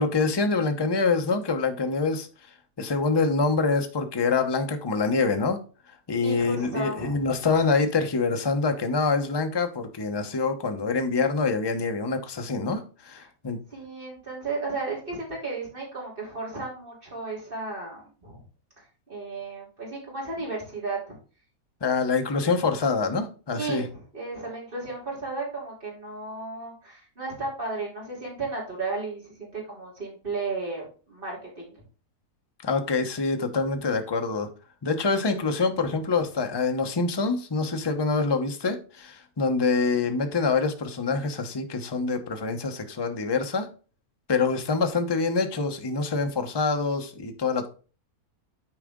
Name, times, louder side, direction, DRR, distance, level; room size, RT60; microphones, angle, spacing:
voice 1, 0.0-2.3 2.8-5.6 6.1-13.6 21.8-23.9 32.6-34.5 34.8-43.7 44.3-47.7, left 4 dB, 20° left, 5 dB, 0.7 m, -25 dB
voice 2, 6.2-7.2 13.7-18.4 18.8-21.2 23.5-31.8, right 3 dB, 35° right, -4 dB, 3.6 m, -34 dB
9.0 x 4.9 x 3.7 m, 0.37 s
omnidirectional pair, 1.6 m